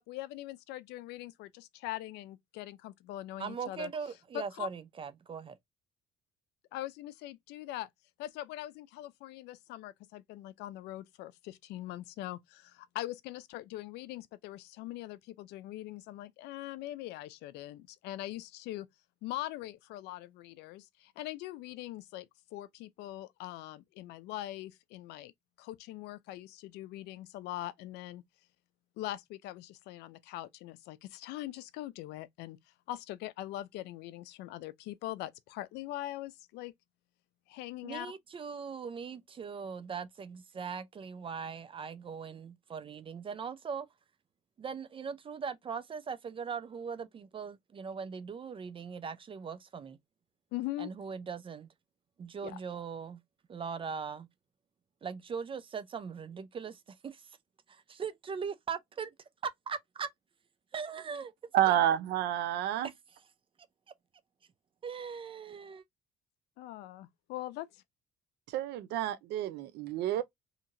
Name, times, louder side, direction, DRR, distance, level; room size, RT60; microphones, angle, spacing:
voice 1, 0.0-3.9 4.3-4.7 6.7-7.9 8.2-18.9 19.2-22.3 22.5-25.3 25.6-28.2 29.0-32.6 32.9-36.7 37.5-38.1 50.5-50.9 52.4-52.6 66.6-67.8, left 15 dB, 85° left, 0.4 m, -42 dB
voice 2, 3.4-5.6 37.8-43.9 44.6-50.0 50.8-51.7 52.2-53.2 53.5-54.3 55.0-57.4 57.7-59.1 59.7-60.1 60.7-61.3 61.7-61.8 62.8-62.9 64.8-65.8, right 6 dB, 30° right, 0.4 m, -40 dB
voice 3, 61.5-62.9 68.5-70.2, right 12 dB, 80° right, 0.6 m, -29 dB
2.8 x 2.8 x 2.5 m
cardioid pair, 110°, 17 cm